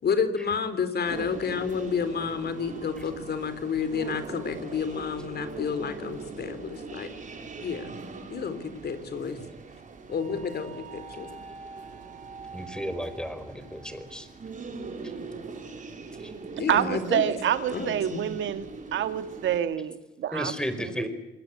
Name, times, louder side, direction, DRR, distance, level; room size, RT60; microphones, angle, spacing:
voice 1, 0.0-7.1 7.6-7.9 8.3-9.4 10.1-11.3 16.6-17.3 17.7-18.2, left 6 dB, 55° left, 11 dB, 3.9 m, -30 dB
sound 1, 1.0-19.6, right 4 dB, 40° right, 5.8 m, -41 dB
voice 2, 12.5-14.3 16.2-16.3 20.3-21.1, equal, 5° left, 10 dB, 4.9 m, -33 dB
voice 3, 16.7-18.7 18.9-20.5 20.8-21.1, right 10 dB, 75° right, 10 dB, 2.1 m, -27 dB
27.5 x 20.5 x 8.7 m, 1.1 s
cardioid pair, 90°, 20 cm